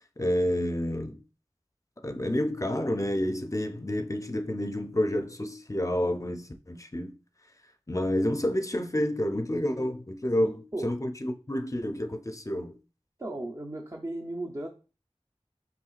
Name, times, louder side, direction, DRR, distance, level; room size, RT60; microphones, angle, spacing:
voice 1, 0.2-1.2 2.0-7.1 7.9-12.7, left 1 dB, 30° left, 0.5 m, -29 dB
voice 2, 10.4-10.9 13.2-14.7, right 1 dB, 30° right, 0.6 m, -36 dB
5.7 x 3.1 x 2.4 m
wide cardioid pair, 45°, 11 cm